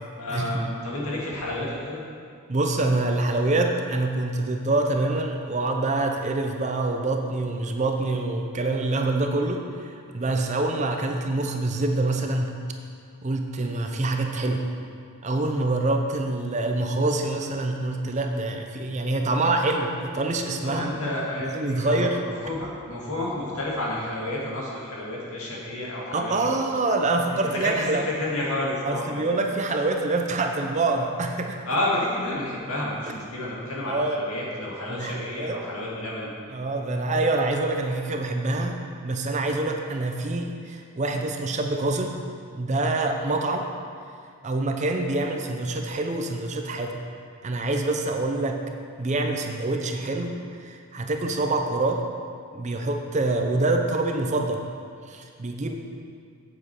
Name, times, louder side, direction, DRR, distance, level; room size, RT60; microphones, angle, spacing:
voice 1, 0.2-2.0 20.6-21.5 21.8-22.1 22.4-26.6 27.4-29.4 31.7-36.3, left 1 dB, 70° left, -4 dB, 2.0 m, -30 dB
voice 2, 2.5-12.5 13.2-14.7 15.2-20.9 21.4-22.2 26.1-28.0 28.8-31.6 33.9-34.2 34.9-35.6 36.5-42.1 42.5-43.7 44.4-47.0 47.4-48.6 49.0-52.0 52.5-54.7 55.1-55.7, right 2 dB, 30° right, 3 dB, 0.6 m, -26 dB
7.8 x 7.4 x 4.8 m, 2.2 s
head